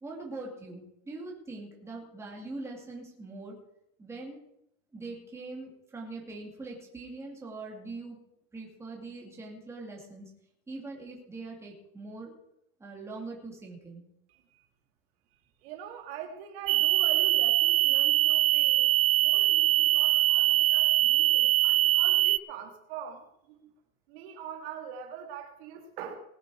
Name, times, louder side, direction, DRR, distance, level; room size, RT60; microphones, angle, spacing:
voice 1, 0.0-3.6 4.0-4.4 4.9-8.2 8.5-10.3 10.7-12.3 12.8-14.0, right 3 dB, 5° right, -2 dB, 2.4 m, -42 dB
voice 2, 14.3-14.7 15.6-18.9 19.2-23.7 24.1-26.2, right 8 dB, 45° right, 5 dB, 2.0 m, -43 dB
sound 1, 16.7-22.4, right 16 dB, 75° right, 0.6 m, -23 dB
20.0 x 9.0 x 4.8 m, 0.77 s
supercardioid pair, 180°, 42 cm